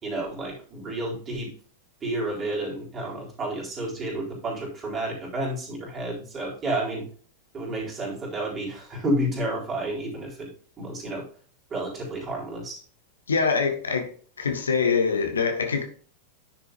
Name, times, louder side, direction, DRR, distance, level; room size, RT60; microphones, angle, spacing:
voice 1, 0.0-1.5 2.0-7.1 7.5-10.5 10.8-11.3 11.7-12.8, right 1 dB, 25° right, -2 dB, 4.0 m, -30 dB
voice 2, 13.3-14.1 14.4-15.8, left 5 dB, 70° left, 5 dB, 1.4 m, -24 dB
10.0 x 6.8 x 2.6 m, 0.43 s
figure-of-eight pair, 90°, 0 cm